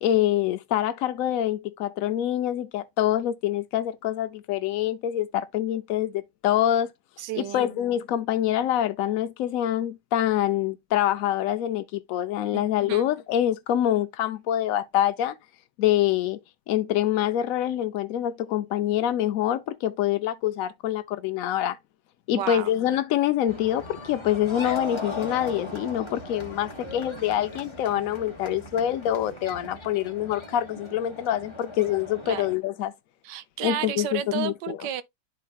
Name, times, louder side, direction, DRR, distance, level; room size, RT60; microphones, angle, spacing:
voice 1, 0.0-6.9 7.4-15.4 15.8-16.4 16.7-21.8 22.3-32.9 33.6-34.8, left 11 dB, 75° left, 0.8 m, -25 dB
voice 2, 7.2-7.8 12.5-13.0 22.3-22.7 32.3-32.5 33.2-35.0, right 11 dB, 80° right, 1.3 m, -32 dB
sound 1, 23.5-32.5, left 2 dB, 20° left, 1.2 m, -39 dB
12.0 x 4.2 x 2.3 m
omnidirectional pair, 2.0 m